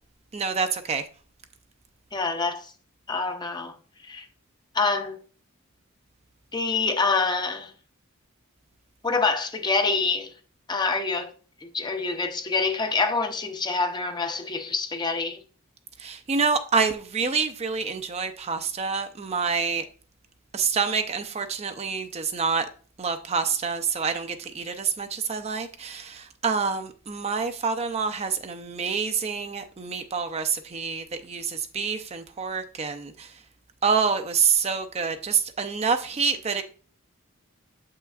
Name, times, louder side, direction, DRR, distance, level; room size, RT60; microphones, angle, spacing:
voice 1, 0.3-1.0 16.0-19.8 20.5-22.7 23.0-33.3 33.8-36.6, right 5 dB, 30° right, 0.5 m, -27 dB
voice 2, 2.1-2.7 3.1-3.8 4.0-4.3 4.7-5.2 6.5-7.7 9.0-10.3 10.7-11.3 11.6-15.4, left 4 dB, 20° left, 0.6 m, -26 dB
7.3 x 5.7 x 2.4 m
head